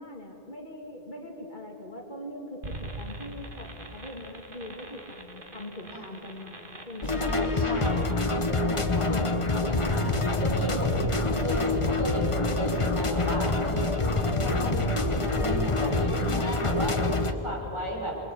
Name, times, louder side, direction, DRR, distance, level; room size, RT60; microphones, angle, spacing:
voice 1, 0.0-7.3 9.1-10.2, left 1 dB, 50° left, 1 dB, 2.8 m, -41 dB
sound 1, 2.6-8.1, right 1 dB, 55° right, 2.2 m, -43 dB
sound 2, 7.0-17.3, left 2 dB, 30° left, 1.2 m, -26 dB
voice 2, 7.2-9.3 9.7-10.9 11.4-14.0 14.4-18.2, right 1 dB, 30° right, -3 dB, 6.5 m, -35 dB
27.5 x 22.5 x 8.5 m, 3.0 s
omnidirectional pair, 1.0 m